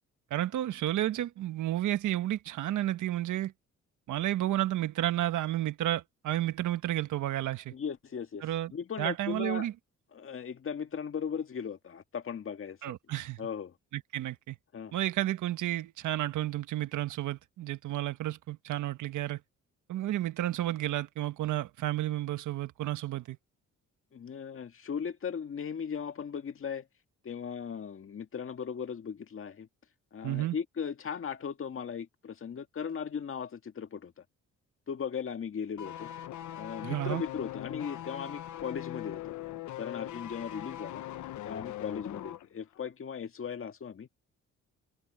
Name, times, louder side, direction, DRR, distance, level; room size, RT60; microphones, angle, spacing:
voice 1, 0.3-3.5 4.1-7.7 8.4-8.7 9.0-9.7 12.8-13.4 13.9-14.6 14.9-19.4 19.9-23.4 30.2-30.6 36.8-37.2, right 14 dB, 75° right, 1.4 m, -31 dB
voice 2, 7.7-8.4 8.7-9.7 10.1-12.9 13.4-13.7 14.7-14.9 24.1-26.9 27.2-29.7 30.1-34.2 34.9-36.1 36.5-39.4 39.8-41.0 41.4-44.1, left 7 dB, 45° left, 1.9 m, -37 dB
sound 1, 35.8-42.5 42.7-42.9, left 13 dB, 75° left, 1.0 m, -41 dB
cardioid pair, 90°, 30 cm